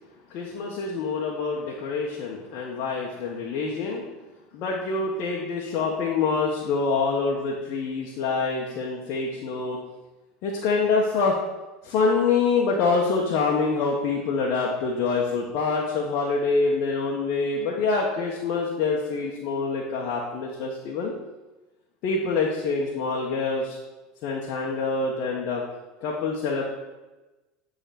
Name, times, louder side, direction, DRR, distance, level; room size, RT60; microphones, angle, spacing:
voice 1, 0.3-4.0 4.5-9.8 10.4-11.4 11.8-21.1 22.0-23.8 24.2-25.6 26.0-26.6, left 4 dB, 55° left, -2 dB, 1.4 m, -26 dB
10.0 x 4.0 x 6.0 m, 1.1 s
hypercardioid pair, 80°, 0 cm